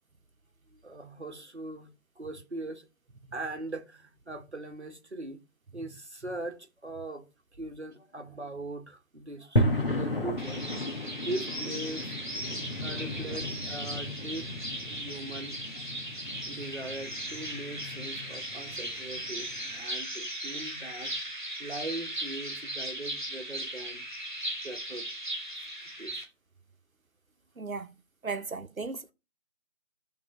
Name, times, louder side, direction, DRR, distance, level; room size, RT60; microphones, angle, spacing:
voice 1, 0.7-2.9 3.3-5.4 5.7-7.3 7.5-10.7 11.1-12.2 12.8-14.5 14.9-15.7 16.5-24.1 24.6-25.1 25.5-26.3, right 2 dB, 55° right, 1.3 m, -40 dB
sound 1, 9.6-19.8, equal, 45° left, 1.2 m, -34 dB
sound 2, 10.4-26.2, right 1 dB, 35° right, 1.7 m, -38 dB
voice 2, 27.6-28.0 28.2-29.1, right 4 dB, 85° right, 1.0 m, -37 dB
11.0 x 3.7 x 3.8 m
figure-of-eight pair, 180°, 41 cm